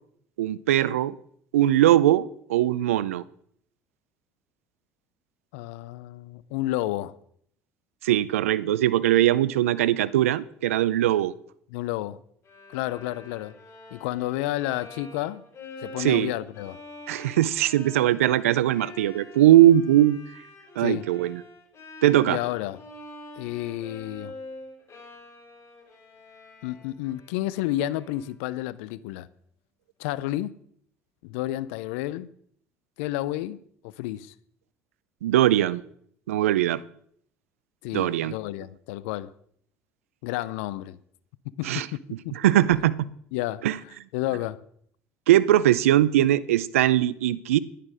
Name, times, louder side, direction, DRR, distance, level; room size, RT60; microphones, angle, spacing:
voice 1, 0.4-1.2 1.5-3.2 8.0-11.3 16.0-16.3 17.1-20.2 20.8-21.4 22.0-22.4 35.2-35.8 36.3-36.8 37.9-38.3 41.6-41.9 42.3-42.9 43.6-43.8 45.3-47.6, right 13 dB, 85° right, 0.4 m, -20 dB
voice 2, 5.5-7.2 11.7-12.2 12.7-13.5 13.9-15.4 15.8-16.8 20.8-21.1 22.3-22.8 23.4-24.4 26.6-29.3 30.0-30.5 31.2-32.3 33.0-33.6 33.8-34.3 37.8-39.3 40.2-41.0 41.6-42.0 42.2-42.3 43.3-43.7 44.1-44.6, left 15 dB, 75° left, 0.5 m, -30 dB
Bowed string instrument, 12.4-28.5, left 2 dB, 40° left, 3.9 m, -46 dB
11.0 x 10.0 x 4.9 m
hypercardioid pair, 65°, 7 cm